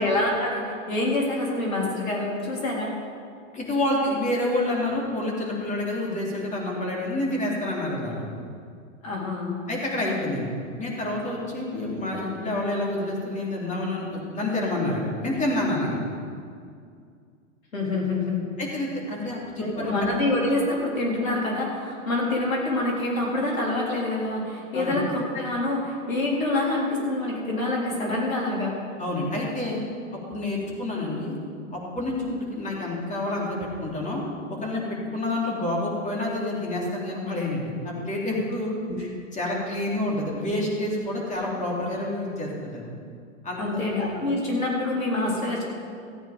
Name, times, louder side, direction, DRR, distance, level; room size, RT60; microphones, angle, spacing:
voice 1, 0.0-2.9 9.0-9.6 17.7-18.4 19.6-28.7 38.9-39.0 43.6-45.6, left 2 dB, 80° left, -2 dB, 3.8 m, -26 dB
voice 2, 3.5-8.2 9.7-10.5 10.8-16.0 18.6-19.9 24.7-25.0 29.0-29.8 30.3-31.4 31.7-34.2 34.5-42.8 43.4-43.8, left 1 dB, 20° left, -3 dB, 3.3 m, -28 dB
14.5 x 9.1 x 5.2 m, 2.3 s
hypercardioid pair, 105°, 40 cm